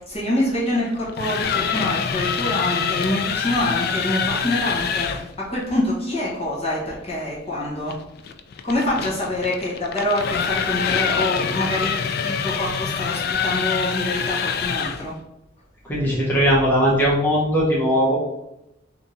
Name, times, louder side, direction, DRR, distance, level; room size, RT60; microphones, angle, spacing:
voice 1, 0.0-8.0 8.6-15.1, left 1 dB, 35° left, -5 dB, 1.2 m, -25 dB
sound 1, 1.0-5.3 7.9-15.1, left 6 dB, 55° left, 0.3 m, -25 dB
voice 2, 15.8-18.1, equal, 10° left, -7 dB, 1.2 m, -19 dB
3.5 x 2.9 x 4.1 m, 0.87 s
head